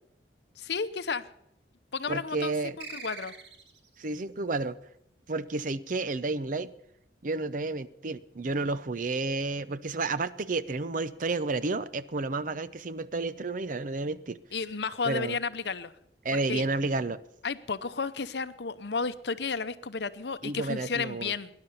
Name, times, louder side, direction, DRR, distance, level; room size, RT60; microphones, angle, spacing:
voice 1, 0.6-1.3 1.9-3.3 14.5-15.9 16.3-16.6 17.4-21.5, left 5 dB, 70° left, 13 dB, 0.8 m, -32 dB
voice 2, 2.1-2.8 4.0-4.8 5.3-6.7 7.2-14.4 15.0-15.4 16.2-17.2 20.4-21.3, right 3 dB, 50° right, 15 dB, 0.6 m, -31 dB
sound 1, 2.8-4.0, right 4 dB, 85° right, 1.9 m, -43 dB
18.5 x 10.5 x 6.9 m, 0.79 s
head